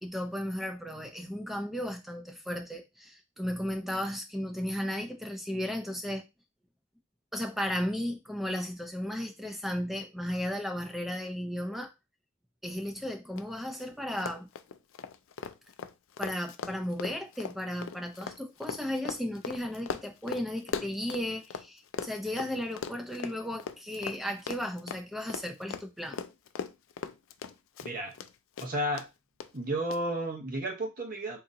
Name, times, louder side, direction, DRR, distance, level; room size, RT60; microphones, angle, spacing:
voice 1, 0.0-6.2 7.3-11.9 12.6-14.5 16.2-26.2, equal, ahead, 0.5 m, -35 dB
Run, 13.4-13.5 13.7-13.9 14.1-21.7 21.9-28.3 28.6-29.1 29.4-29.5 29.9-30.0, left 6 dB, 75° left, 0.4 m, -38 dB
voice 2, 27.8-28.1 28.6-29.0 29.5-31.4, right 1 dB, 45° right, 0.9 m, -32 dB
3.8 x 2.9 x 2.6 m
head